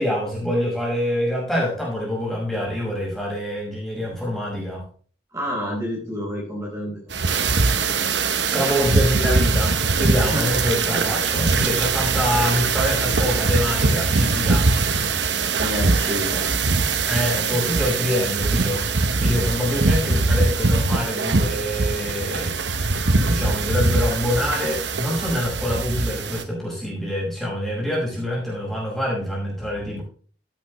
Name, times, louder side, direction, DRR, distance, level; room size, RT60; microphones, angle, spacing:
voice 1, 0.0-4.8 8.5-14.7 16.3-16.5 17.1-18.9 19.2-22.6 23.3-30.0, left 1 dB, ahead, -4 dB, 5.6 m, -25 dB
voice 2, 5.3-7.5 10.3-10.4 15.6-16.5, equal, 20° right, -5 dB, 4.5 m, -29 dB
sound 1, 7.1-26.4, right 3 dB, 80° right, 1.1 m, -22 dB
15.0 x 8.5 x 3.2 m, 0.42 s
head